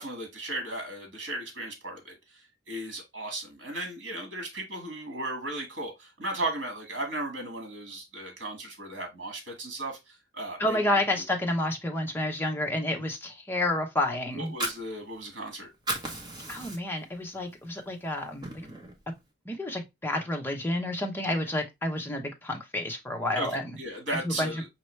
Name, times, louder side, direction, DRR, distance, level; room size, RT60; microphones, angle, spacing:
voice 1, 0.0-2.1 2.7-10.9 14.3-15.7 23.4-24.7, right 1 dB, 65° right, 1.8 m, -36 dB
voice 2, 10.6-14.5 16.5-18.7 19.5-23.8 24.2-24.6, left 1 dB, 10° left, 0.8 m, -30 dB
Fire, 14.3-15.5 15.7-17.1 17.5-17.7 18.0-19.0, right 2 dB, 20° right, 1.0 m, -35 dB
5.4 x 2.9 x 3.1 m
head